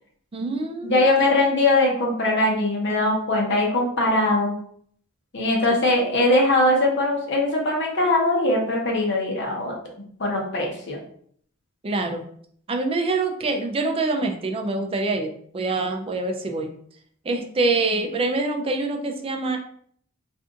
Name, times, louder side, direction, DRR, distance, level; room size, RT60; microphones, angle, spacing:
voice 1, 0.3-1.0 11.8-12.3 12.7-16.7 17.2-19.6, right 3 dB, 30° right, 3 dB, 0.4 m, -25 dB
voice 2, 0.8-4.5 5.3-9.7 10.2-11.0, left 2 dB, 60° left, -1 dB, 0.9 m, -21 dB
2.6 x 2.4 x 3.7 m, 0.62 s
head